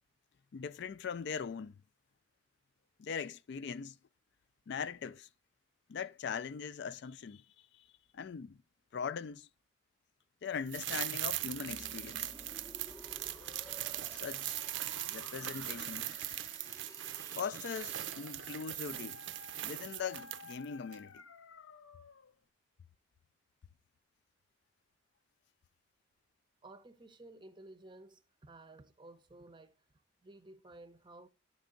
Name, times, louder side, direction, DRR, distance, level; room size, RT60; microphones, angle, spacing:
voice 1, 0.5-1.7 3.0-4.0 4.7-5.3 5.9-7.4 7.7-7.8 8.1-8.6 8.9-9.5 10.4-12.3 14.1-14.6 15.1-16.1 17.4-19.2 19.6-21.2, left 6 dB, 55° left, 0.4 m, -41 dB
sound 1, 10.7-20.6 20.9-21.0, right 13 dB, 65° right, 0.5 m, -40 dB
sound 2, 11.1-19.0, left 2 dB, 15° left, 0.6 m, -54 dB
Dog, 17.3-22.3, left 5 dB, 85° left, 0.8 m, -55 dB
voice 2, 26.6-29.9 30.2-31.3, right 2 dB, 25° right, 0.6 m, -54 dB
10.5 x 4.6 x 3.8 m
head